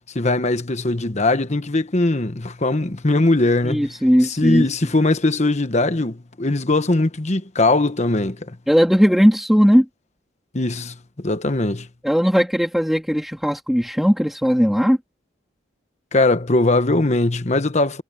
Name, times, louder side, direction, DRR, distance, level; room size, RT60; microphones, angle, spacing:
voice 1, 0.1-3.9 4.2-8.6 10.5-11.9 16.1-18.0, left 2 dB, 35° left, 1.2 m, -20 dB
voice 2, 3.6-4.7 8.7-9.9 12.0-15.0, equal, ahead, 3.4 m, -17 dB
head